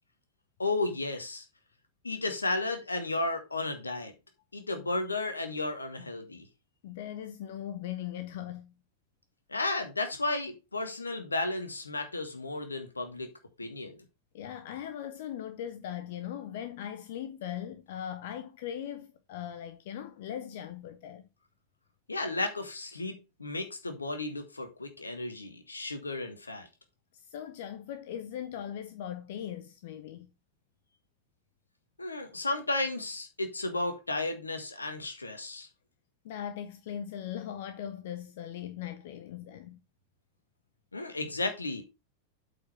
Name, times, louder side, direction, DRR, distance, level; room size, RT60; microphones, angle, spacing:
voice 1, 0.6-1.4 2.0-4.1 4.5-6.5 9.5-13.3 13.6-14.0 22.1-26.7 32.0-35.7 40.9-41.8, left 2 dB, 80° left, 1.7 m, -33 dB
voice 2, 6.8-8.7 14.3-21.2 27.1-30.3 36.2-39.8, left 10 dB, 55° left, 0.7 m, -39 dB
8.4 x 5.1 x 4.4 m
figure-of-eight pair, 90°, 0 cm